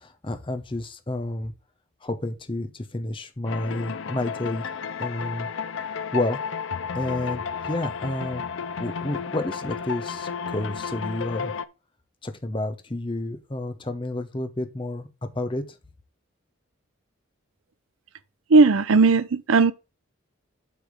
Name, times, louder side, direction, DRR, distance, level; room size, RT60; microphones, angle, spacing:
voice 1, 0.0-1.5 2.0-4.7 5.0-5.5 6.1-6.4 6.9-8.4 8.8-11.5 12.2-15.1 15.3-15.6, left 1 dB, 25° left, 0.8 m, -30 dB
sound 1, 3.4-11.6, left 6 dB, 65° left, 0.5 m, -32 dB
voice 2, 18.5-19.7, right 3 dB, 75° right, 0.6 m, -17 dB
8.3 x 3.5 x 6.2 m
head